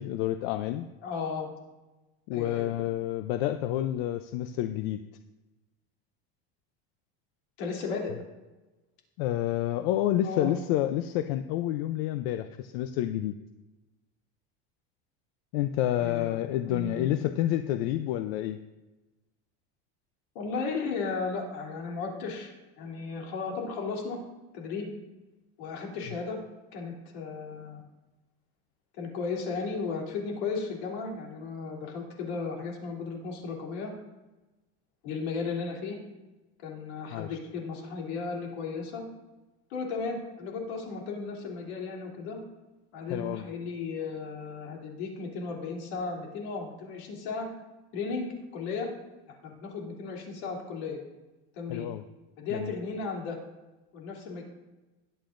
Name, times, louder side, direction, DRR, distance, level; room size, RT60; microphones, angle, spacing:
voice 1, 0.0-0.9 2.3-5.0 9.2-13.4 15.5-18.6 37.1-37.3 43.1-43.4 51.7-52.0 52.5-52.7, left 13 dB, 70° left, 9 dB, 0.6 m, -29 dB
voice 2, 1.0-1.5 2.3-2.7 7.6-8.1 10.2-10.5 16.0-16.4 16.7-17.2 20.3-22.5 22.8-24.2 24.5-24.9 25.6-26.4 26.7-27.8 29.0-33.9 35.0-36.0 36.6-39.0 39.7-42.4 42.9-47.5 47.9-48.9 49.3-51.0 51.6-51.9 52.4-53.4 53.9-54.4, left 4 dB, 90° left, 0 dB, 3.2 m, -35 dB
20.5 x 8.8 x 2.6 m, 1.1 s
cardioid pair, 165°, 32 cm